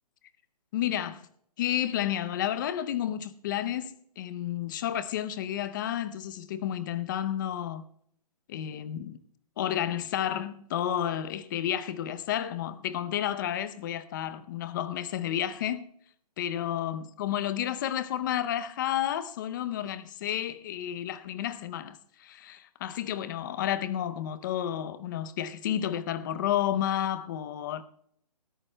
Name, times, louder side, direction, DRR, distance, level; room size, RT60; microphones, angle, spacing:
voice 1, 0.7-1.3 1.6-7.8 8.5-9.2 9.6-15.9 16.4-27.8, left 11 dB, 30° left, 0.6 m, -31 dB
24.0 x 13.5 x 2.2 m
hypercardioid pair, 155°, 21 cm